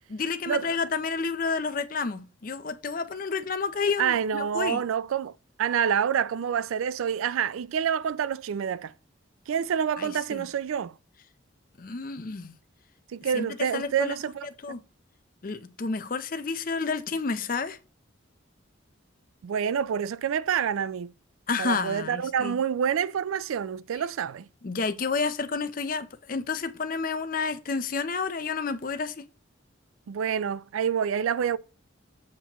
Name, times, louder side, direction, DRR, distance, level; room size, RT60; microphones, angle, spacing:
voice 1, 0.1-4.8 10.0-10.5 11.8-12.5 13.3-13.5 13.7-14.2 14.6-14.8 15.4-17.8 21.5-22.6 24.6-29.3, left 4 dB, 40° left, 0.5 m, -30 dB
voice 2, 4.0-5.3 5.6-8.9 9.5-10.9 13.1-14.5 19.4-21.1 21.6-24.5 30.1-31.6, right 8 dB, 85° right, 0.3 m, -27 dB
7.3 x 5.9 x 2.9 m
head